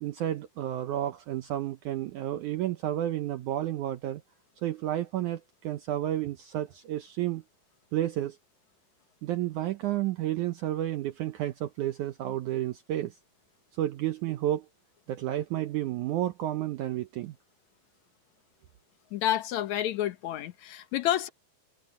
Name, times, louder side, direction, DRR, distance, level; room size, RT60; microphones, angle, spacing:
voice 1, 0.0-4.2 4.6-7.4 7.9-8.4 9.2-13.2 13.8-14.7 15.1-17.4, right 13 dB, 80° right, 1.8 m, -31 dB
voice 2, 19.1-21.3, left 12 dB, 65° left, 1.9 m, -29 dB
omnidirectional pair, 4.5 m